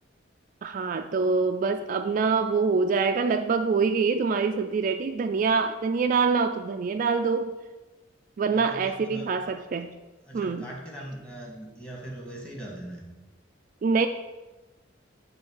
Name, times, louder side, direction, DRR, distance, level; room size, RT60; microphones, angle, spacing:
voice 1, 0.6-7.6 8.4-9.9 10.3-10.7 13.8-14.1, right 4 dB, 45° right, 7 dB, 0.3 m, -25 dB
voice 2, 8.5-9.3 10.2-13.1, right 1 dB, 5° left, -2 dB, 1.7 m, -40 dB
8.7 x 3.2 x 6.4 m, 1.1 s
head